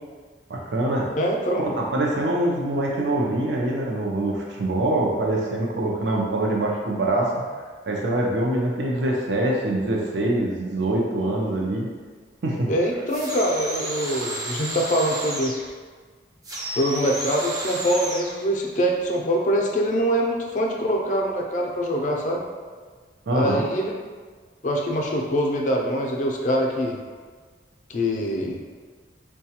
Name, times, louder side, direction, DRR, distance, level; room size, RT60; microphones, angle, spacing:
voice 1, 0.5-1.1 1.6-7.4 7.9-11.9 12.4-12.7 23.3-23.7, right 1 dB, 80° right, -2 dB, 0.5 m, -24 dB
voice 2, 1.1-1.7 12.7-15.6 16.7-22.4 23.3-23.9 24.6-27.0 27.9-28.6, equal, 45° left, 0 dB, 0.4 m, -24 dB
sound 1, 13.1-15.7 16.4-18.4, right 1 dB, 20° right, 0.4 m, -32 dB
4.6 x 2.2 x 2.8 m, 1.5 s
head